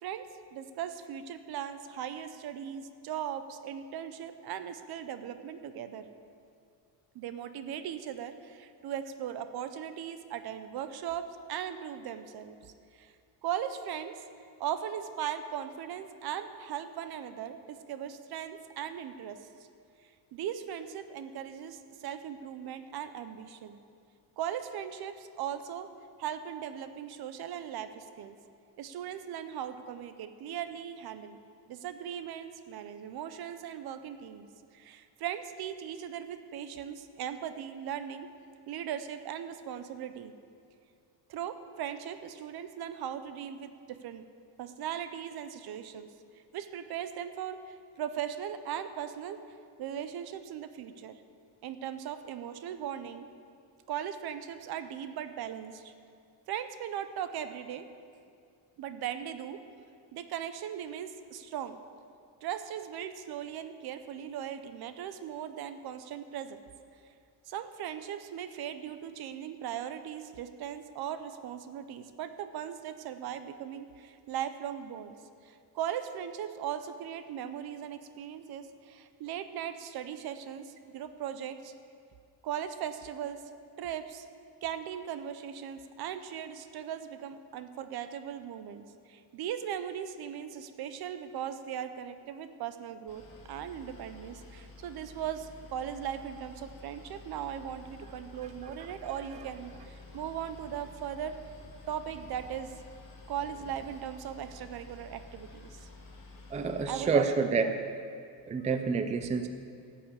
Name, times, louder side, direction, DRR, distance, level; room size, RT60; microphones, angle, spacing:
voice 1, 0.0-6.1 7.1-13.1 13.4-14.2 14.6-19.5 20.3-23.8 24.4-25.9 26.2-28.4 28.8-31.4 31.7-34.5 34.7-38.3 38.7-40.3 41.3-44.2 44.6-49.4 49.8-51.2 51.6-53.3 53.9-55.9 56.5-57.9 58.8-59.6 60.1-61.8 62.4-66.6 67.5-75.1 75.4-81.7 82.4-83.4 83.8-84.3 84.6-101.4 101.9-102.8 103.3-105.9 106.9-107.7, right 9 dB, 60° right, 10 dB, 0.7 m, -38 dB
Boat Water vehicle, 93.1-106.8, left 3 dB, 50° left, 2.5 m, -51 dB
voice 2, 106.5-107.7 108.5-109.5, right 5 dB, 20° right, 8 dB, 0.4 m, -28 dB
13.0 x 5.9 x 8.2 m, 2.4 s
cardioid pair, 155°, 42 cm